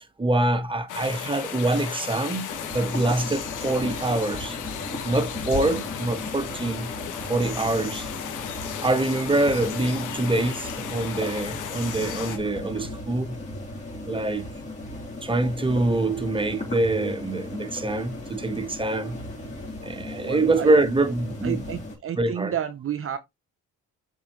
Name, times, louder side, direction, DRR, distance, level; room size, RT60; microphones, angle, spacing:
voice 1, 0.2-4.6 5.0-6.9 7.3-8.1 8.8-13.4 14.1-14.7 15.2-19.2 19.8-21.6 22.2-22.5, right 2 dB, 15° right, 1.3 m, -25 dB
sound 1, 0.9-12.4, left 8 dB, 85° left, 1.8 m, -35 dB
sound 2, 2.5-21.9, left 1 dB, 25° left, 4.1 m, -36 dB
voice 2, 20.2-20.8 21.4-23.2, right 9 dB, 45° right, 0.8 m, -31 dB
7.2 x 4.6 x 3.1 m
cardioid pair, 90°, 30 cm